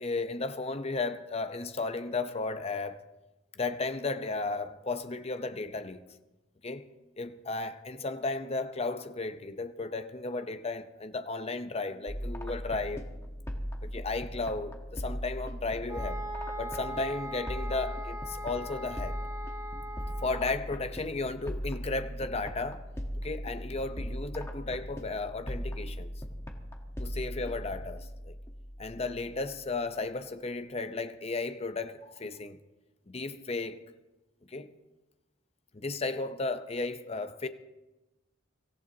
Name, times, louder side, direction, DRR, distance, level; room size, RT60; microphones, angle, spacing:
voice 1, 0.0-3.0 3.6-6.0 6.6-6.9 7.2-13.1 13.8-16.2 16.6-19.2 20.2-22.8 23.2-26.1 27.0-28.3 28.8-32.6 33.1-33.9 34.5-34.7 35.7-37.5, left 3 dB, 30° left, 0.7 m, -34 dB
sound 1, 12.1-29.7, equal, 15° left, 1.2 m, -39 dB
sound 2, 15.9-20.6, equal, 20° right, 4.6 m, -40 dB
24.5 x 15.0 x 2.8 m
head